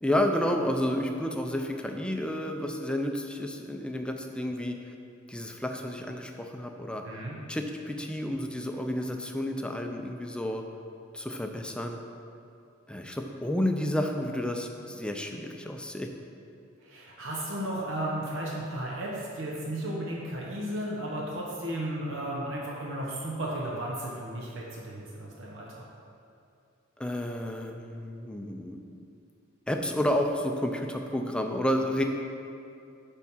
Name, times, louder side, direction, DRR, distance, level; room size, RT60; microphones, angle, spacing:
voice 1, 0.0-4.8 5.3-7.0 7.5-10.6 11.1-12.0 12.9-16.1 27.0-28.8 29.7-32.0, left 1 dB, 5° left, 4 dB, 0.4 m, -30 dB
voice 2, 7.0-7.4 16.8-25.9, right 1 dB, 70° right, -4 dB, 1.0 m, -34 dB
8.9 x 3.6 x 5.5 m, 2.5 s
head